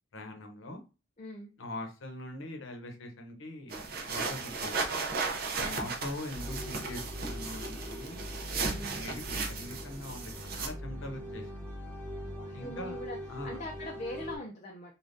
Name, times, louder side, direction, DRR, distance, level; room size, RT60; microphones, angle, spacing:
voice 1, 0.1-0.8 1.6-5.0 5.6-11.5 12.5-13.0 13.3-13.6, left 1 dB, 70° left, 4 dB, 0.8 m, -42 dB
voice 2, 1.2-1.5 5.6-5.9 8.6-9.1 12.2-14.9, left 1 dB, 35° left, 0 dB, 0.4 m, -42 dB
sound 1, 3.7-10.7, right 4 dB, 45° right, 0.6 m, -36 dB
sound 2, 6.3-14.4, equal, 10° left, 0.8 m, -41 dB
3.4 x 2.2 x 2.6 m, 0.31 s
head